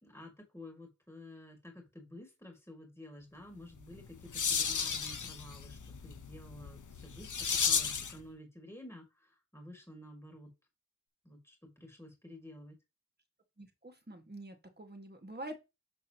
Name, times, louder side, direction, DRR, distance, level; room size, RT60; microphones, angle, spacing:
voice 1, 0.0-10.5 11.2-12.8, left 1 dB, 10° left, 2.3 m, -51 dB
sound 1, 3.8-8.2, left 6 dB, 75° left, 0.9 m, -34 dB
voice 2, 13.6-15.6, right 1 dB, 35° right, 1.8 m, -46 dB
6.7 x 6.3 x 2.9 m
wide cardioid pair, 55°, 30 cm